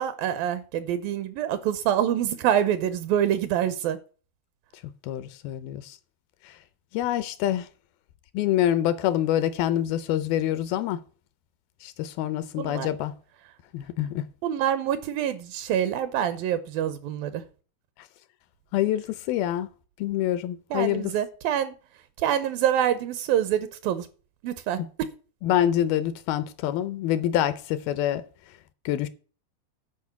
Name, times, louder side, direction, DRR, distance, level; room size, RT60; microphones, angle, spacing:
voice 1, 0.0-4.0 12.6-12.9 14.4-17.4 20.7-21.7 22.2-24.1 24.4-24.8, right 10 dB, 80° right, 2.4 m, -26 dB
voice 2, 5.0-6.0 6.9-7.7 8.3-11.0 11.8-13.1 13.7-14.2 18.7-19.7 20.0-21.1 25.4-28.2 28.9-29.1, left 12 dB, 80° left, 2.5 m, -26 dB
10.5 x 5.2 x 7.0 m
omnidirectional pair, 4.4 m